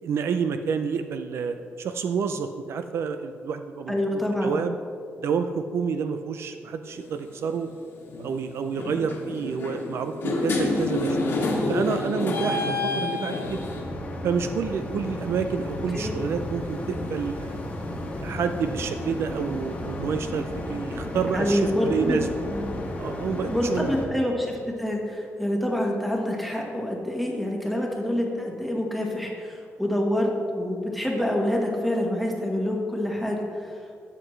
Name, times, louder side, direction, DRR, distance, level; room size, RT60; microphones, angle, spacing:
voice 1, 0.0-4.8 5.2-7.7 8.2-11.3 11.7-13.7 14.2-17.5 18.2-22.3 23.0-23.9, right 6 dB, 60° right, 8 dB, 0.4 m, -29 dB
voice 2, 3.9-4.6 15.9-16.1 21.3-22.2 22.5-22.7 23.5-33.8, left 1 dB, ahead, 0 dB, 1.3 m, -27 dB
sound 1, 6.9-7.1 8.1-8.4 8.7-13.8, left 2 dB, 50° left, 1.6 m, -27 dB
sound 2, 13.4-24.0, left 1 dB, 30° left, 1.3 m, -33 dB
12.5 x 7.9 x 3.2 m, 2.4 s
wide cardioid pair, 160°, 5 cm